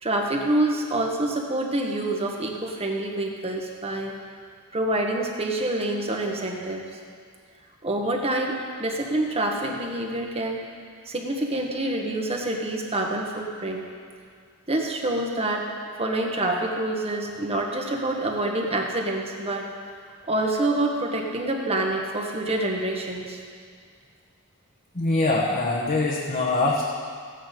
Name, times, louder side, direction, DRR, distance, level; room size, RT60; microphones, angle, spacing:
voice 1, 0.0-4.2 4.7-6.8 7.8-10.6 11.1-13.8 14.7-15.7 16.0-19.7 20.3-23.4, right 1 dB, 25° right, 1 dB, 1.4 m, -27 dB
voice 2, 24.9-26.8, left 2 dB, 35° left, -4 dB, 1.2 m, -23 dB
15.5 x 9.1 x 5.2 m, 2.1 s
head